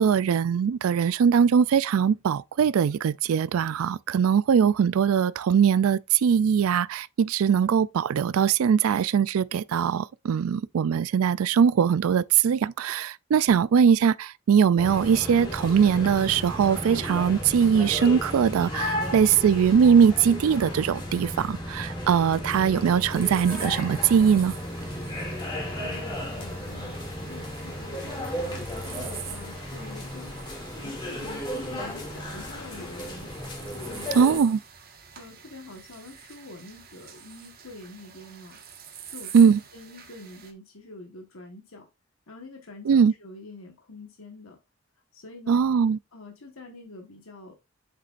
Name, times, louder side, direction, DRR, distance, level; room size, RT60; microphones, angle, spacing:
voice 1, 0.0-24.5 34.2-34.6 39.3-39.6 42.9-43.1 45.5-46.0, right 7 dB, 85° right, 0.4 m, -21 dB
sound 1, 14.8-34.4, left 1 dB, 20° left, 2.4 m, -34 dB
sound 2, 23.0-40.5, right 8 dB, 45° right, 1.5 m, -46 dB
voice 2, 25.8-33.3 33.6-34.6 35.1-38.6 39.0-41.9 42.3-44.6 45.1-45.8 46.1-47.6, left 2 dB, 80° left, 1.4 m, -46 dB
7.5 x 6.8 x 2.5 m
head